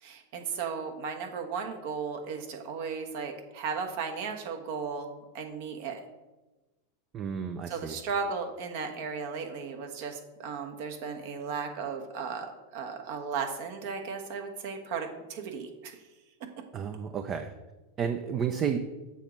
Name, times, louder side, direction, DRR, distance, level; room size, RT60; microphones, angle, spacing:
voice 1, 0.0-6.0 7.7-16.0, right 5 dB, 55° right, 4 dB, 1.2 m, -35 dB
voice 2, 7.1-8.0 16.7-17.5 18.0-18.8, right 7 dB, 35° right, 8 dB, 0.5 m, -31 dB
7.2 x 4.0 x 5.9 m, 1.1 s
hypercardioid pair, 95°, 0 cm